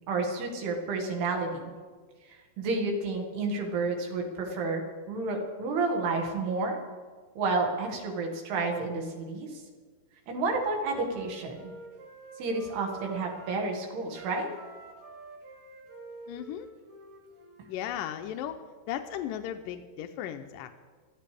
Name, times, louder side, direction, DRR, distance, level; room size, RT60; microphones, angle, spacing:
voice 1, 0.1-1.6 2.3-6.8 7.4-9.6 10.3-11.7 12.4-14.5, right 3 dB, 85° right, 2 dB, 4.0 m, -30 dB
Wind instrument woodwind instrument, 10.2-13.6 14.1-17.7, right 2 dB, 40° right, 2.3 m, -49 dB
voice 2, 16.3-16.7 17.7-18.6 18.9-20.8, left 10 dB, 85° left, 7 dB, 2.0 m, -36 dB
24.0 x 14.5 x 3.4 m, 1.5 s
omnidirectional pair, 4.6 m